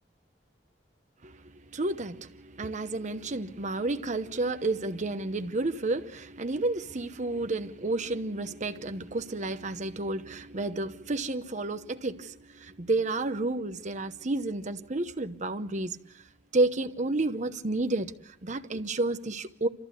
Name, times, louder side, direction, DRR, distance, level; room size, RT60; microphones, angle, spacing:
voice 1, 1.7-16.0 16.5-19.7, right 2 dB, 40° right, 0.9 m, -31 dB
28.5 x 14.0 x 8.2 m
head